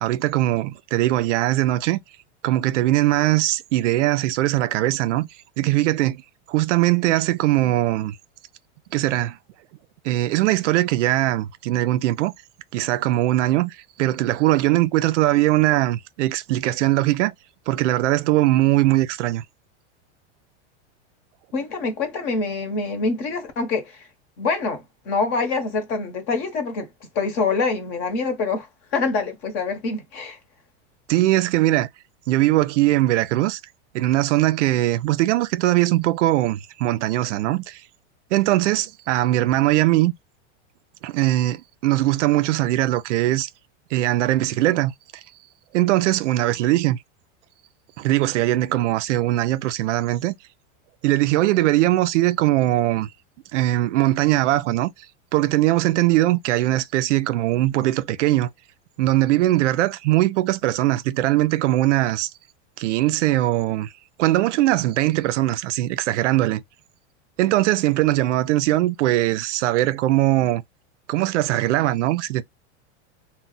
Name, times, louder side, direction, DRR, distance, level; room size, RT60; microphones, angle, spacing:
voice 1, 0.0-2.0 2.4-5.3 5.6-6.2 6.5-8.2 8.9-9.4 10.0-12.3 12.7-17.3 17.7-19.4 31.1-31.9 32.3-33.6 33.9-37.8 38.3-40.1 41.0-43.5 43.9-44.9 45.7-47.0 48.0-50.3 51.0-53.1 53.5-54.9 55.3-58.5 59.0-62.3 62.8-63.9 64.2-66.6 67.4-70.6 71.1-72.4, right 16 dB, 80° right, 0.5 m, -20 dB
voice 2, 21.5-24.0 24.4-26.9 27.1-28.7 28.9-30.4, left 4 dB, 40° left, 1.0 m, -25 dB
2.3 x 2.1 x 3.8 m
supercardioid pair, 155°, 35 cm